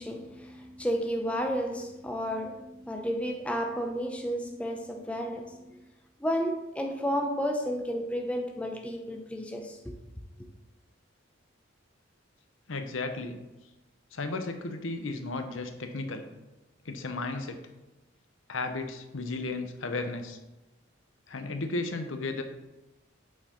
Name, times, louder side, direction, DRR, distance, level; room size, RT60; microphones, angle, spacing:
voice 1, 0.0-5.8 6.2-9.9, equal, 5° left, 0.6 m, -32 dB
voice 2, 12.7-13.4 14.1-16.2 16.8-17.6 18.5-20.4 21.3-22.4, left 3 dB, 75° left, 0.9 m, -34 dB
8.4 x 4.5 x 4.4 m
head